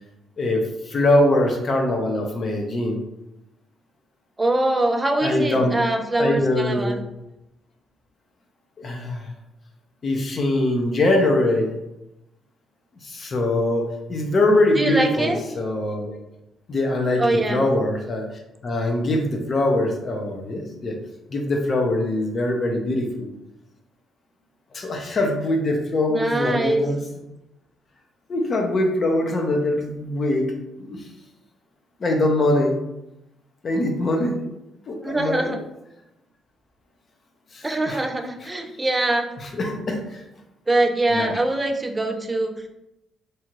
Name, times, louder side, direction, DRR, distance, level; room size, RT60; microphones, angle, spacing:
voice 1, 0.4-3.0 5.2-5.7 6.2-7.0 8.8-9.3 10.0-11.8 13.0-16.1 16.7-18.2 18.6-21.0 21.3-23.3 24.7-27.0 28.3-31.0 32.0-32.8 33.6-34.4 34.9-35.5 37.5-38.0 39.4-40.2 41.1-41.3, left 1 dB, 45° left, 2 dB, 0.6 m, -22 dB
voice 2, 4.4-7.0 14.8-15.4 17.2-17.6 26.1-26.8 35.0-35.6 37.6-39.3 40.7-42.6, right 2 dB, 20° right, 5 dB, 0.4 m, -23 dB
2.7 x 2.4 x 2.9 m, 0.88 s
cardioid pair, 90°, 0 cm